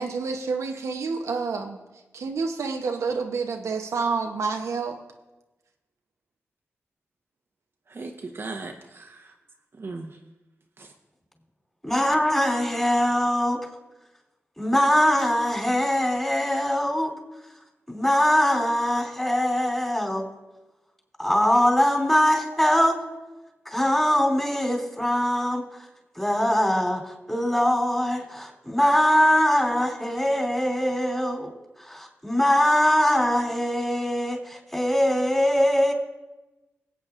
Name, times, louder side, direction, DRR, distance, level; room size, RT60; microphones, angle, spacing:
voice 1, 0.0-1.8 2.1-5.0, right 4 dB, 90° right, 4 dB, 0.8 m, -28 dB
voice 2, 7.9-9.3 9.7-10.2 10.8-10.9, right 3 dB, 55° right, 2 dB, 0.9 m, -38 dB
voice 3, 11.8-13.6 14.6-17.1 17.9-20.3 21.2-23.0 23.6-25.6 26.2-31.5 31.8-35.9, equal, 10° left, -1 dB, 3.1 m, -22 dB
23.0 x 8.4 x 2.4 m, 1.1 s
cardioid pair, 65°, 5 cm